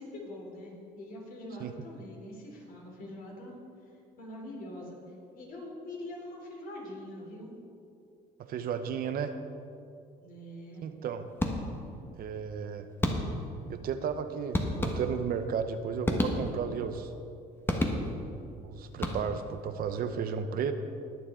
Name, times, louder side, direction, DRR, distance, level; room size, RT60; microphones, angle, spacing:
voice 1, 0.0-3.6 4.2-7.5 10.2-10.8, left 1 dB, 60° left, -1 dB, 3.1 m, -44 dB
voice 2, 8.5-9.4 10.8-11.3 12.2-12.9 13.7-17.1 18.6-20.7, right 7 dB, 60° right, 9 dB, 0.8 m, -33 dB
sound 1, 11.4-12.0 13.0-13.6 14.5-15.4 16.0-16.8 17.7-18.4 18.9-19.6, left 1 dB, 15° left, 1.3 m, -31 dB
20.0 x 7.2 x 3.7 m, 2.5 s
cardioid pair, 110°, 17 cm